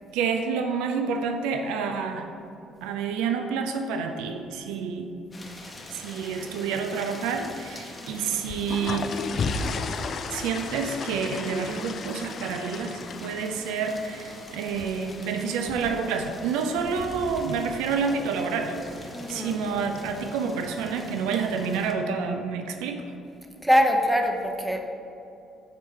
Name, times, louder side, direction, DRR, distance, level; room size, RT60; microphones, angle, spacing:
voice 1, 0.1-2.3 2.8-5.1 5.9-9.1 10.3-18.8 19.0-23.0, right 5 dB, 75° right, 5 dB, 0.4 m, -28 dB
sound 1, 5.3-21.9, left 2 dB, 25° left, 0.9 m, -44 dB
sound 2, 8.4-17.4, left 4 dB, 55° left, 0.3 m, -35 dB
voice 2, 19.1-19.6 23.6-24.8, equal, 5° right, 3 dB, 0.7 m, -23 dB
6.6 x 4.5 x 3.2 m, 2.8 s
hypercardioid pair, 50°, 0 cm